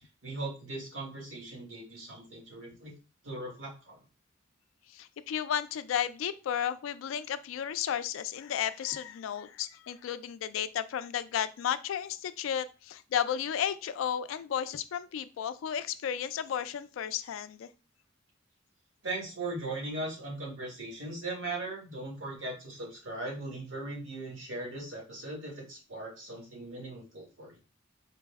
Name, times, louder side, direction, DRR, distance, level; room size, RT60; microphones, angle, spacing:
voice 1, 0.2-2.9 3.2-4.0 19.0-27.6, right 2 dB, 90° right, -2 dB, 1.7 m, -39 dB
voice 2, 4.9-17.7, left 9 dB, 80° left, 13 dB, 0.3 m, -33 dB
3.9 x 2.1 x 3.4 m, 0.32 s
head